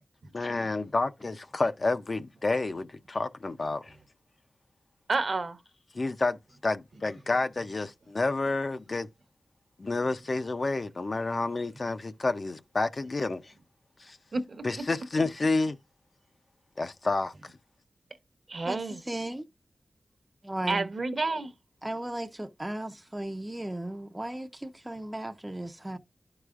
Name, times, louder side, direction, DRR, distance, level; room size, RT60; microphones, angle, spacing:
voice 1, 0.3-3.9 5.9-9.1 9.8-13.5 14.0-14.2 14.6-15.8 16.8-17.3, left 3 dB, 40° left, 0.5 m, -29 dB
voice 2, 5.1-5.6 14.3-14.6 18.5-19.0 20.7-21.5, right 3 dB, 50° right, 0.9 m, -29 dB
voice 3, 19.1-19.5 20.4-20.9 21.8-26.0, right 1 dB, 10° right, 0.5 m, -36 dB
12.0 x 4.8 x 2.4 m
wide cardioid pair, 130°, 0 cm